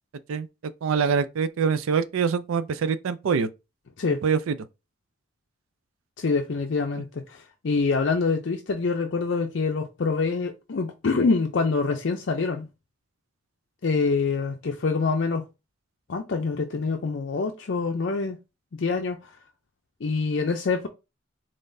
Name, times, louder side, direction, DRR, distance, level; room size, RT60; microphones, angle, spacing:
voice 1, 0.8-3.5 4.2-4.6, right 6 dB, 85° right, 0.4 m, -24 dB
voice 2, 6.2-12.7 13.8-15.4 16.1-18.4 18.8-19.3 20.0-20.9, left 4 dB, 60° left, 0.5 m, -25 dB
3.8 x 3.6 x 2.6 m
head